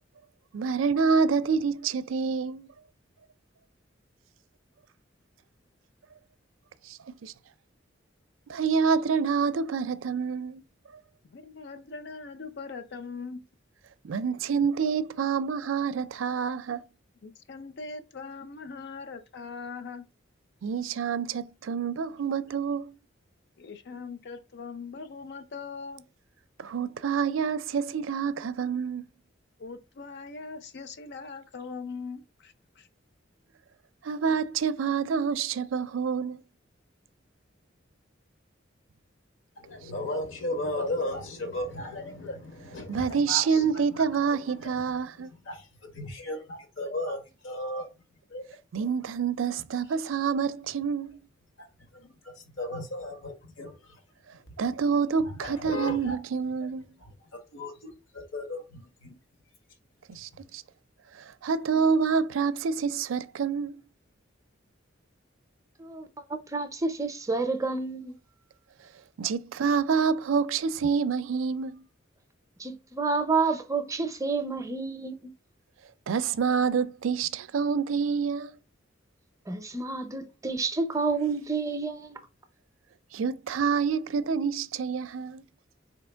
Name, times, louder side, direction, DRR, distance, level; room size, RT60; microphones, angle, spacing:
voice 1, 0.5-2.7 6.9-7.3 8.5-10.6 14.0-16.8 20.6-23.0 26.6-29.1 34.0-36.4 42.9-45.3 48.7-51.2 54.6-56.8 60.1-60.6 61.4-63.8 69.2-71.8 76.1-78.6 83.1-85.4, right 6 dB, 85° right, 0.4 m, -27 dB
voice 2, 11.2-13.4 17.2-20.1 23.6-26.0 29.6-32.9, left 4 dB, 60° left, 0.5 m, -41 dB
voice 3, 39.6-47.9 48.3-48.4 50.0-50.1 51.9-54.0 54.5-54.6 55.2-56.2 57.0-59.1, left 1 dB, 80° left, 1.2 m, -36 dB
voice 4, 66.5-68.1 72.6-75.3 79.5-82.2, right 4 dB, 15° right, 0.5 m, -29 dB
4.4 x 2.9 x 3.3 m
head